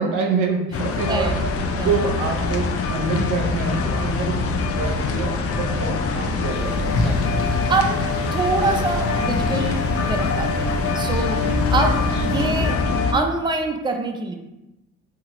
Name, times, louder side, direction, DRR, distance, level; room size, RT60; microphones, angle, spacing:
voice 1, 0.0-1.5 1.8-7.3 11.4-11.7, right 4 dB, 90° right, 2 dB, 0.6 m, -26 dB
sound 1, 0.7-13.1, left 4 dB, 50° left, 0.4 m, -24 dB
voice 2, 1.1-1.4 1.7-1.9 5.7-5.8 7.0-8.0 8.3-11.4 11.7-12.7 13.1-14.4, right 3 dB, 15° right, 4 dB, 0.4 m, -25 dB
sound 2, 6.5-12.8, left 2 dB, 90° left, 0.7 m, -28 dB
2.8 x 2.4 x 2.9 m, 0.96 s
cardioid pair, 90°, 30 cm